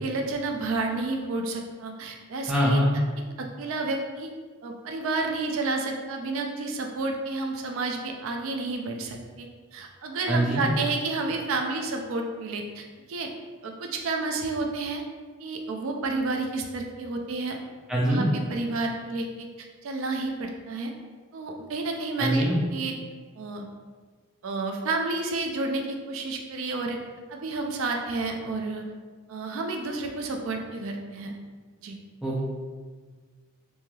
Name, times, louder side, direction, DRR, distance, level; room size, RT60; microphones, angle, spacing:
voice 1, 0.0-2.8 3.4-4.3 4.6-13.3 13.6-15.0 15.4-17.6 18.1-20.9 21.3-22.4 22.7-22.9 23.4-23.6 24.4-27.0 27.3-28.8 29.3-31.3 31.8-32.0, right 3 dB, 70° right, 3 dB, 0.3 m, -30 dB
voice 2, 2.5-2.9 10.3-10.6 17.9-18.3 22.2-22.5 32.2-32.4, equal, 5° right, -6 dB, 0.4 m, -23 dB
3.0 x 2.6 x 2.3 m, 1.5 s
head